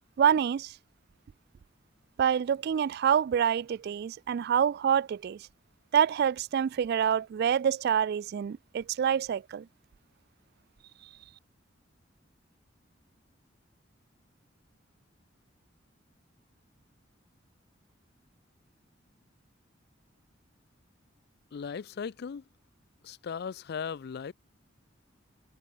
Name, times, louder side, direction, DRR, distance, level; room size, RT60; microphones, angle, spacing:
voice 1, 0.2-0.7 2.2-5.4 5.9-9.6, right 8 dB, 55° right, 0.3 m, -26 dB
voice 2, 21.5-22.4 23.0-24.3, left 6 dB, 55° left, 0.4 m, -37 dB
head